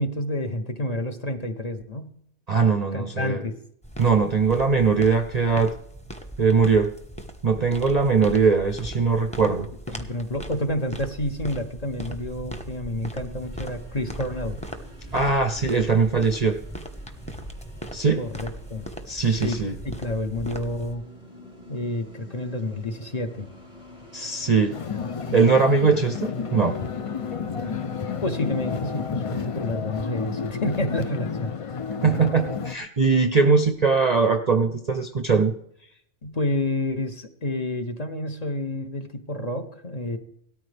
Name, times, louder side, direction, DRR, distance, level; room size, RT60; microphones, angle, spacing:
voice 1, 0.0-2.1 2.9-3.6 9.9-14.6 18.2-18.9 19.2-19.6 19.8-21.0 21.7-23.5 28.2-31.5 36.2-40.2, left 1 dB, 35° left, 5 dB, 0.9 m, -29 dB
voice 2, 2.5-3.4 4.0-5.7 6.4-6.9 7.4-9.7 15.1-16.6 17.9-18.2 19.1-19.7 24.1-24.7 25.3-26.8 32.0-35.5, right 5 dB, 40° right, 7 dB, 0.6 m, -21 dB
sound 1, 3.8-20.9, right 1 dB, 5° left, 1.0 m, -39 dB
sound 2, 13.4-29.1, left 1 dB, 70° left, 4.4 m, -46 dB
sound 3, 24.7-32.8, left 6 dB, 55° left, 0.3 m, -31 dB
17.5 x 13.5 x 3.4 m, 0.67 s
omnidirectional pair, 1.3 m